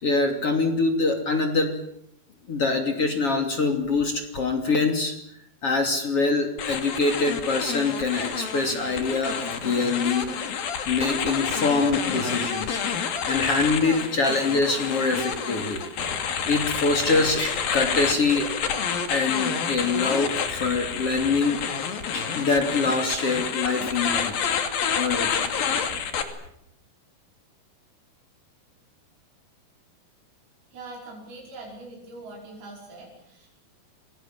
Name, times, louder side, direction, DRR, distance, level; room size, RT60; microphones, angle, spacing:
voice 1, 0.0-1.7 2.5-5.2 5.6-10.3 10.9-12.8 13.3-15.8 16.5-18.5 19.1-21.6 22.1-24.4 24.9-25.5, left 3 dB, 40° left, 4 dB, 3.5 m, -24 dB
sound 1, 6.6-26.2, left 7 dB, 70° left, 4.1 m, -29 dB
voice 2, 30.7-33.5, right 2 dB, 80° right, -2 dB, 7.2 m, -42 dB
29.0 x 22.5 x 7.6 m, 0.73 s
omnidirectional pair, 4.3 m